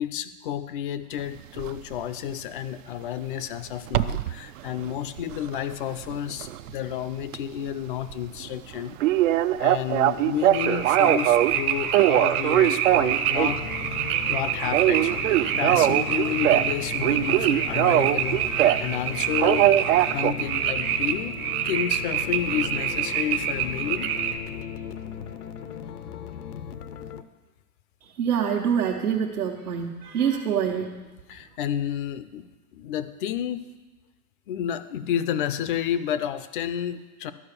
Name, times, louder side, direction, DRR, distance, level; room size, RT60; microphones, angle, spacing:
voice 1, 0.0-9.0 9.6-13.6 14.3-18.4 18.8-24.1 24.5-24.6 31.3-32.5 32.7-33.8 34.5-37.3, left 10 dB, 40° left, 13 dB, 0.4 m, -31 dB
sound 1, 1.6-1.8 3.9-4.3 4.8-6.9 7.2-7.4 7.7-7.8 8.1-8.2 8.5-8.6 9.0-11.6 11.9-13.7 14.0-14.3 14.6-16.7 17.0-18.9 19.4-20.3, right 14 dB, 60° right, 0.5 m, -21 dB
sound 2, 10.5-24.4, right 9 dB, 35° right, 0.8 m, -27 dB
sound 3, 13.4-27.2, left 8 dB, 85° left, 0.8 m, -38 dB
voice 2, 28.2-30.9, right 8 dB, 80° right, -2 dB, 1.3 m, -25 dB
12.0 x 5.2 x 6.7 m, 1.2 s
hypercardioid pair, 135°, 45 cm